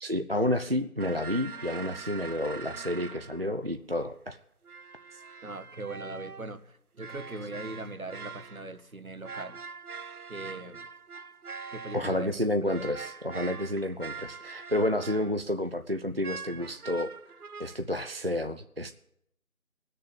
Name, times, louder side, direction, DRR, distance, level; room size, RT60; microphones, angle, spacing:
voice 1, 0.0-4.4 5.1-5.2 11.9-17.1 17.6-18.9, left 1 dB, 45° right, 7 dB, 0.5 m, -30 dB
sound 1, 1.0-3.6 4.6-6.5 7.0-8.8 9.2-15.4 16.2-17.8, right 5 dB, 85° right, 0.8 m, -43 dB
voice 2, 5.4-9.6 10.3-10.9 11.7-13.0, right 2 dB, 70° right, 10 dB, 1.4 m, -40 dB
18.5 x 6.7 x 9.4 m, 0.77 s
figure-of-eight pair, 170°, 43 cm